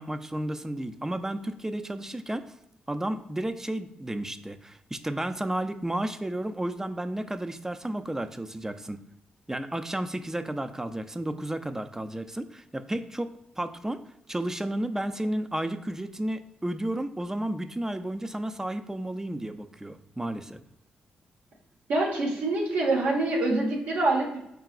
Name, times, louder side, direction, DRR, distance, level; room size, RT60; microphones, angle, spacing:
voice 1, 0.0-2.5 2.9-9.0 9.5-14.0 14.3-20.6, right 1 dB, 15° right, 9 dB, 0.4 m, -32 dB
voice 2, 21.9-24.4, right 2 dB, 75° right, -2 dB, 1.2 m, -25 dB
4.7 x 2.9 x 2.5 m, 0.83 s
supercardioid pair, 45°, 3 cm